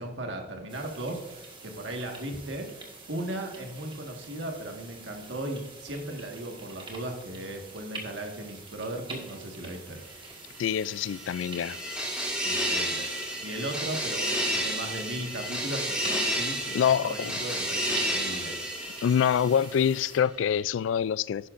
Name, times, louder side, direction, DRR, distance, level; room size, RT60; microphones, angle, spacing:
voice 1, 0.0-10.0 12.4-18.6, right 1 dB, 70° right, 1.6 m, -37 dB
sound 1, 0.7-20.2, right 3 dB, 25° right, 1.6 m, -47 dB
voice 2, 10.6-11.8 16.7-17.3 19.0-21.5, left 8 dB, 80° left, 0.3 m, -25 dB
sound 2, 10.7-19.8, equal, 5° right, 2.8 m, -31 dB
11.5 x 9.9 x 2.6 m
head